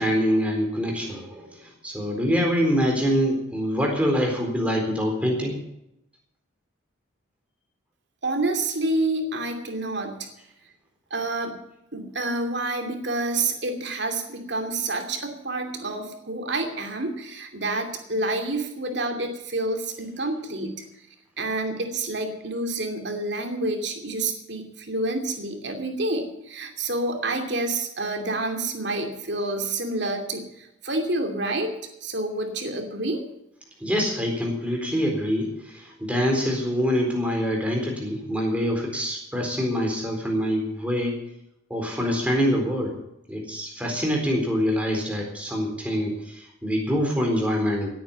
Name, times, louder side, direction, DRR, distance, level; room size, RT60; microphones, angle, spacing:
voice 1, 0.0-5.6 33.8-41.2 41.7-42.9 43.3-47.9, equal, 5° right, 0 dB, 4.0 m, -25 dB
voice 2, 8.2-10.3 11.1-11.6 11.9-20.8 21.4-31.7 32.0-33.2, right 2 dB, 55° right, 4 dB, 2.7 m, -28 dB
17.5 x 9.3 x 7.0 m, 0.83 s
head